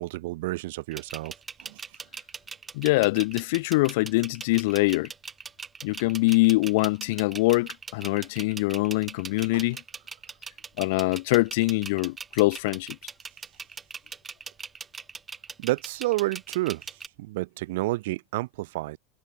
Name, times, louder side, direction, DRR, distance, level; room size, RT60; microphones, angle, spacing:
voice 1, 0.0-1.3 1.6-1.8 9.5-9.6 15.6-19.0, right 20 dB, 65° right, 1.0 m, -30 dB
sound 1, 0.9-17.1, right 5 dB, 15° right, 0.9 m, -40 dB
voice 2, 2.7-5.1 5.8-9.8 10.8-13.0, left 23 dB, 60° left, 0.9 m, -24 dB
supercardioid pair, 175°, 0 cm